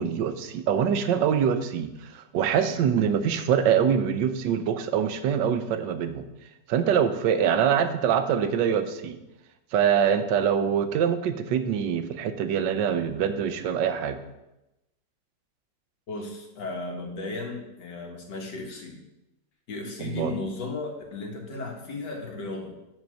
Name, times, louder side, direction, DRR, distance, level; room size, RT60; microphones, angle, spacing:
voice 1, 0.0-6.2 6.7-9.2 9.7-14.2 20.0-20.3, right 8 dB, 90° right, 9 dB, 1.4 m, -24 dB
voice 2, 16.1-19.0 19.7-22.8, left 3 dB, 80° left, 1 dB, 2.2 m, -35 dB
9.6 x 4.5 x 6.3 m, 0.95 s
omnidirectional pair, 1.9 m